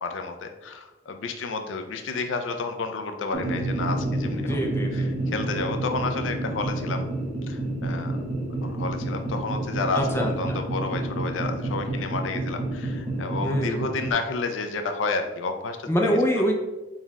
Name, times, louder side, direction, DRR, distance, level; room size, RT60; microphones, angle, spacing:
voice 1, 0.0-4.6 4.9-7.0 7.5-8.1 8.6-16.2, left 3 dB, 90° left, 6 dB, 0.5 m, -31 dB
sound 1, 3.3-14.1, right 2 dB, 35° right, 1.1 m, -29 dB
voice 2, 4.5-5.1 9.9-10.6 13.4-13.8 15.9-16.5, equal, 15° left, 1 dB, 0.4 m, -25 dB
4.0 x 2.4 x 4.0 m, 1.1 s
head